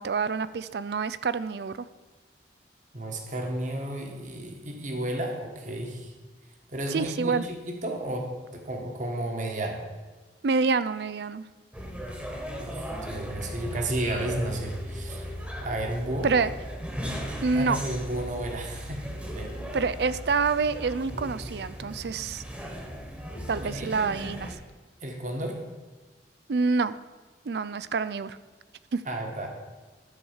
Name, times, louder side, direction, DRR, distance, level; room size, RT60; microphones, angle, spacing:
voice 1, 0.0-1.9 6.9-7.5 10.4-11.4 16.2-16.5 17.4-17.8 19.7-22.4 23.5-24.6 26.5-26.9 27.5-28.4 28.9-29.0, right 4 dB, 65° right, 15 dB, 0.4 m, -27 dB
voice 2, 2.9-6.1 6.7-8.3 8.5-9.8 12.6-15.3 15.6-16.3 17.5-19.0 19.3-19.6 23.6-23.9 25.0-25.6 29.1-29.5, right 1 dB, 45° right, 2 dB, 1.5 m, -32 dB
sound 1, 11.7-24.5, equal, 5° right, 1.4 m, -37 dB
12.0 x 4.7 x 7.3 m, 1.3 s
head